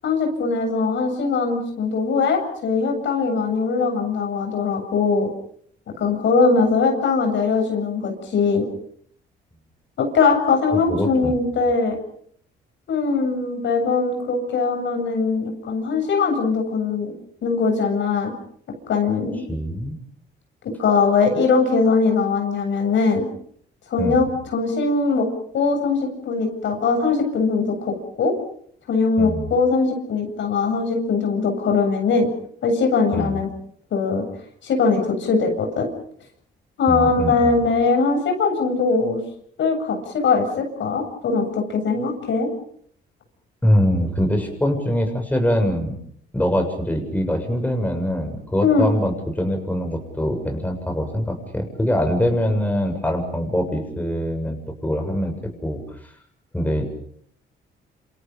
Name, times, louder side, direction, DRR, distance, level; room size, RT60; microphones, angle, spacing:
voice 1, 0.0-5.3 6.0-8.7 10.0-12.0 12.9-17.1 17.4-18.3 18.9-19.4 20.8-23.3 23.9-25.3 25.5-28.3 28.9-32.3 32.6-33.5 33.9-34.2 34.6-35.9 36.8-39.2 39.6-42.5 48.6-48.9, left 4 dB, 70° left, 4 dB, 8.0 m, -21 dB
voice 2, 10.7-11.4 19.5-20.0 24.0-24.3 29.2-29.5 33.1-33.4 36.9-37.6 43.6-45.9 46.3-54.6 54.8-55.8 56.5-56.9, equal, 10° left, 4 dB, 7.4 m, -23 dB
28.5 x 28.0 x 5.3 m, 0.64 s
cardioid pair, 90°, 20 cm